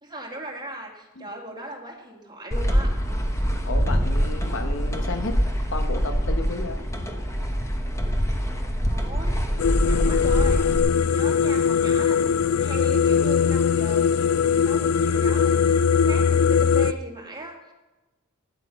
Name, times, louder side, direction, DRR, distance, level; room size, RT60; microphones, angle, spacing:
voice 1, 0.0-3.0 8.8-17.7, right 1 dB, 20° right, 0 dB, 2.0 m, -38 dB
sound 1, 2.5-10.8, equal, 15° left, 1.0 m, -24 dB
voice 2, 3.6-5.4 5.7-6.8, left 3 dB, 55° left, 7 dB, 1.1 m, -32 dB
sound 2, 9.6-16.9, left 6 dB, 80° left, 0.4 m, -21 dB
12.0 x 9.3 x 5.6 m, 1.1 s
head